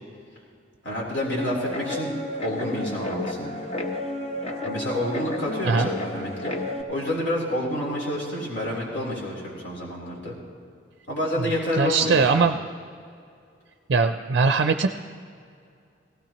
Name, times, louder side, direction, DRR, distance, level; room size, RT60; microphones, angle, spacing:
voice 1, 0.8-2.1 2.4-3.5 4.6-6.5 6.9-10.4 11.1-12.4, left 1 dB, 70° left, -4 dB, 3.6 m, -29 dB
Guitar, 1.4-6.8, left 1 dB, 30° left, 0.9 m, -31 dB
voice 2, 11.8-12.6 13.9-14.9, right 4 dB, 60° right, 7 dB, 0.4 m, -20 dB
18.0 x 16.5 x 3.0 m, 2.3 s
head